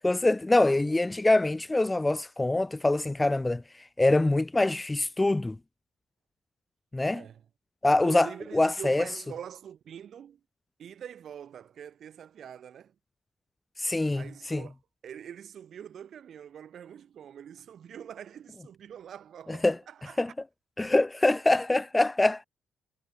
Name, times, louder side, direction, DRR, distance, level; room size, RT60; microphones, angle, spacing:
voice 1, 0.0-3.6 4.0-5.6 6.9-7.2 7.8-8.3 8.5-9.0 13.8-14.2 14.5-14.6 19.6-19.8 20.2-20.3 20.8-22.4, left 2 dB, 15° left, 0.4 m, -24 dB
voice 2, 7.1-7.5 7.9-10.4 10.8-12.9 14.1-14.8 15.0-20.3, right 9 dB, 60° right, 6.5 m, -44 dB
cardioid pair, 90°, 0 cm